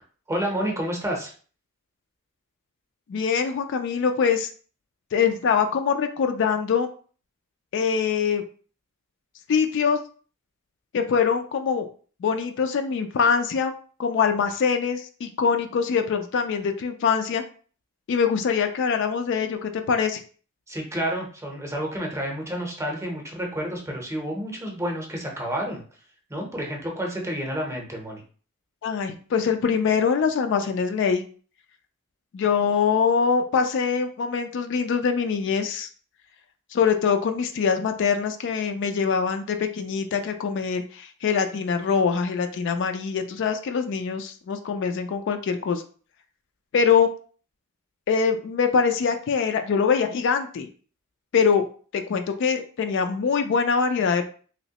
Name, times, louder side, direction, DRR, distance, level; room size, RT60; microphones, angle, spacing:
voice 1, 0.3-1.3 20.7-25.8 26.3-28.2, equal, 15° right, 0 dB, 0.7 m, -30 dB
voice 2, 3.1-4.5 5.1-6.9 7.7-8.4 9.5-10.0 10.9-11.9 12.2-13.7 14.0-17.4 18.1-20.2 28.8-31.2 32.3-35.9 36.7-45.8 46.7-47.1 48.1-50.7 51.3-51.6 51.9-54.3, left 6 dB, 55° left, 7 dB, 0.3 m, -23 dB
3.1 x 2.9 x 2.8 m, 0.42 s
head